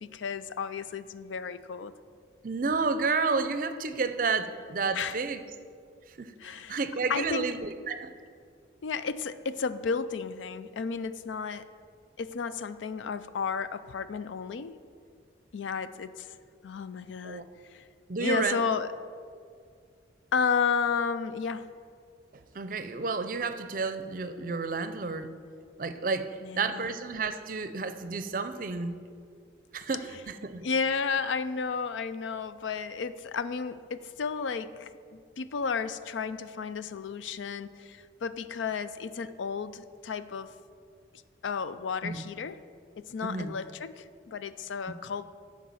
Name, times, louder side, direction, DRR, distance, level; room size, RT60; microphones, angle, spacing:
voice 1, 0.0-1.9 4.9-5.2 6.4-7.6 8.8-11.6 12.2-14.8 15.5-16.3 16.6-17.4 17.7-17.8 18.2-18.9 20.3-21.7 26.4-27.0 29.9-30.3 30.6-40.5 41.4-42.6 43.0-45.2, left 5 dB, 85° left, 13 dB, 0.4 m, -33 dB
voice 2, 2.4-5.4 6.2-8.1 17.2-17.4 18.1-18.6 22.5-25.3 25.8-29.0 29.7-30.7 42.0-42.2 43.2-43.6, right 4 dB, 45° right, 10 dB, 0.5 m, -31 dB
11.5 x 4.7 x 7.1 m, 2.2 s
head